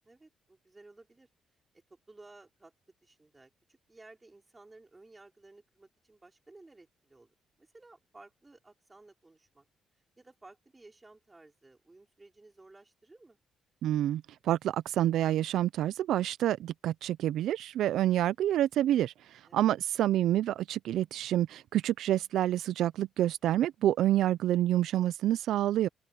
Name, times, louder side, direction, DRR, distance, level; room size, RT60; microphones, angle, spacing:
voice 1, 0.0-1.3 1.7-2.7 3.0-7.3 7.6-9.7 10.2-13.4 19.4-19.7, right 2 dB, 20° right, 4.4 m, -56 dB
voice 2, 13.8-19.1 19.5-25.9, right 12 dB, 80° right, 0.4 m, -28 dB
open air
cardioid pair, 90°, 0 cm